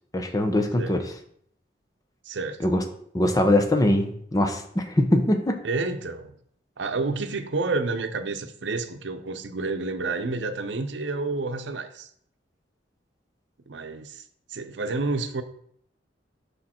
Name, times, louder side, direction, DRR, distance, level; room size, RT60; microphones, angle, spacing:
voice 1, 0.1-1.1 2.6-2.8 3.1-5.6, left 1 dB, 20° left, 5 dB, 0.7 m, -22 dB
voice 2, 2.2-2.7 5.6-6.3 6.8-12.1 13.7-14.2 14.5-15.4, right 3 dB, 80° right, 8 dB, 0.7 m, -29 dB
6.4 x 5.1 x 4.3 m, 0.65 s
head